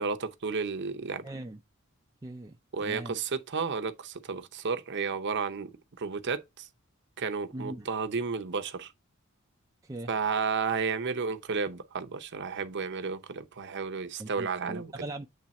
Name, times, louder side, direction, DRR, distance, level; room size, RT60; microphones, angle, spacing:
voice 1, 0.0-1.2 2.7-6.7 7.2-8.9 10.1-14.9, right 5 dB, 55° right, 0.7 m, -32 dB
voice 2, 1.2-1.6 2.2-2.6 2.8-3.2 7.5-7.9 9.8-10.1 14.2-15.3, right 1 dB, 15° right, 0.5 m, -40 dB
7.5 x 3.3 x 4.2 m
head